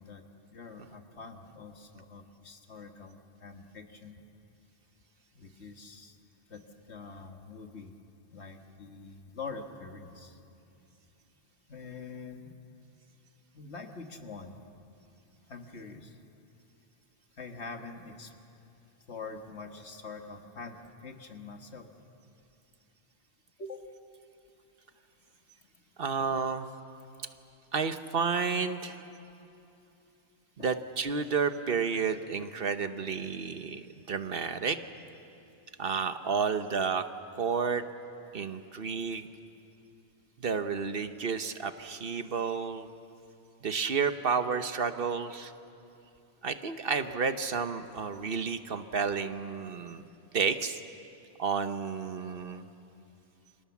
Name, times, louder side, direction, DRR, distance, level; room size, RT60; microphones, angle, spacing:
voice 1, 0.0-4.2 5.3-6.2 6.5-7.9 8.3-10.4 11.7-12.6 13.5-14.6 15.5-16.2 17.4-18.3 19.1-21.9 23.6-23.8 30.6-30.7, left 4 dB, 80° left, 4 dB, 2.0 m, -45 dB
voice 2, 26.0-26.7 27.7-29.0 30.6-34.8 35.8-37.1 37.4-37.8 38.3-39.3 40.4-42.9 43.6-45.5 46.4-50.0 50.3-50.8 51.4-52.6, right 5 dB, 60° right, 9 dB, 1.1 m, -31 dB
29.5 x 25.5 x 7.2 m, 2.8 s
omnidirectional pair, 1.1 m